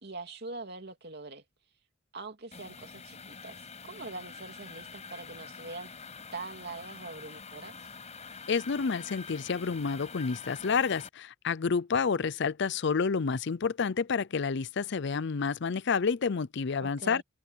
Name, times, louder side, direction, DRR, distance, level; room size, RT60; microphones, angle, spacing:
voice 1, 0.0-1.4 2.1-7.8 16.8-17.2, right 3 dB, 55° right, 3.1 m, -43 dB
sound 1, 2.5-11.1, left 5 dB, 35° left, 6.4 m, -46 dB
voice 2, 8.5-17.2, left 5 dB, 60° left, 0.5 m, -29 dB
head